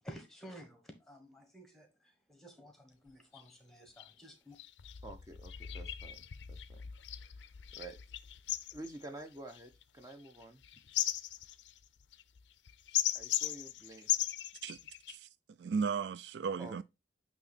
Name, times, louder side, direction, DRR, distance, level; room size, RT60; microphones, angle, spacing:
voice 1, 0.0-4.6, equal, ahead, 1.3 m, -52 dB
sound 1, 3.1-3.2 3.3-3.5 4.0-4.1 4.6-15.1, left 13 dB, 80° left, 0.4 m, -38 dB
voice 2, 5.0-6.8 7.7-8.0 8.7-10.6 13.1-14.1 16.6-16.8, right 2 dB, 20° right, 0.7 m, -49 dB
voice 3, 15.6-16.8, right 5 dB, 70° right, 0.3 m, -35 dB
8.9 x 3.0 x 4.1 m
head